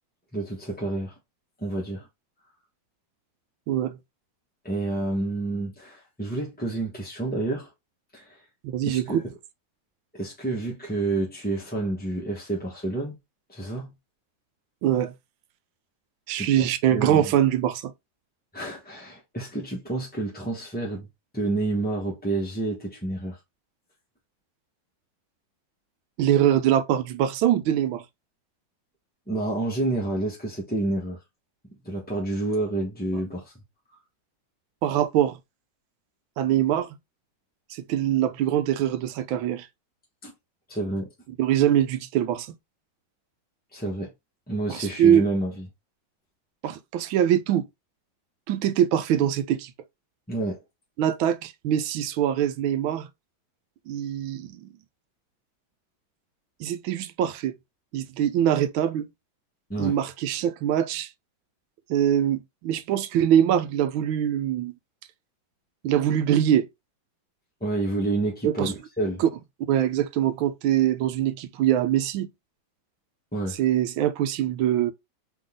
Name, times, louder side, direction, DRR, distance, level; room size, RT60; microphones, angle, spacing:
voice 1, 0.3-1.1 1.6-2.1 4.6-7.7 8.1-8.4 8.9-9.2 10.1-13.2 13.5-13.9 16.3-17.3 18.5-21.1 21.3-23.4 29.3-31.2 31.8-33.5 40.2-40.3 40.7-41.1 43.7-44.1 44.5-45.7 50.3-50.6 59.7-60.0 67.6-69.2 73.3-73.6, right 2 dB, 10° left, 0.7 m, -29 dB
voice 2, 3.7-4.0 8.6-9.2 14.8-15.1 16.3-17.9 26.2-28.0 34.8-35.4 36.4-36.9 37.7-39.7 41.4-42.5 44.7-45.2 46.6-47.7 48.5-49.7 51.0-53.1 53.9-54.6 56.6-57.5 57.9-59.1 59.8-61.1 61.9-64.7 65.8-66.7 68.4-68.7 69.2-69.3 69.7-72.3 73.6-74.9, right 10 dB, 85° right, 1.4 m, -23 dB
3.9 x 3.6 x 3.6 m
omnidirectional pair, 2.2 m